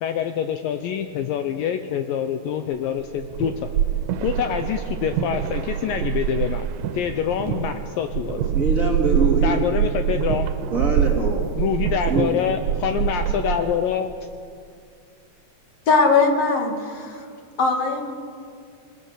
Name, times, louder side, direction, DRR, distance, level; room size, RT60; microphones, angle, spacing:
voice 1, 0.0-3.7 4.2-6.7 6.9-8.4 9.4-10.5 11.6-14.1, left 8 dB, 75° left, 7 dB, 2.1 m, -25 dB
sound 1, 3.0-13.8, right 10 dB, 85° right, 3.0 m, -25 dB
voice 2, 8.5-9.6 10.7-11.4 12.1-12.3, right 2 dB, 25° right, -1 dB, 1.8 m, -23 dB
voice 3, 15.9-17.3 17.6-18.1, left 4 dB, 45° left, 3 dB, 2.4 m, -20 dB
27.5 x 19.5 x 6.6 m, 2.2 s
omnidirectional pair, 4.8 m